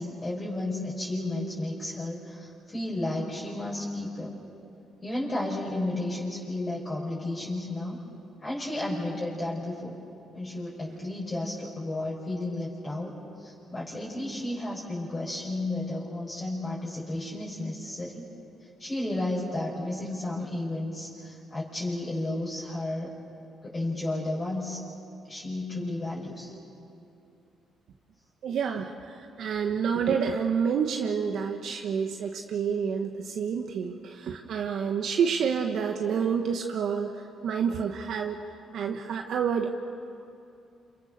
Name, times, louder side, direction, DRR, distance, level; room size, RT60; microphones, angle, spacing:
voice 1, 0.0-4.4 5.0-8.0 8.4-10.0 10.3-18.2 18.8-23.1 23.6-24.8 25.3-26.5, left 1 dB, 25° left, -6 dB, 5.7 m, -33 dB
voice 2, 28.4-38.4 38.7-39.8, right 6 dB, 70° right, 3 dB, 1.4 m, -28 dB
28.0 x 27.5 x 6.7 m, 2.6 s
cardioid pair, 90°, 0 cm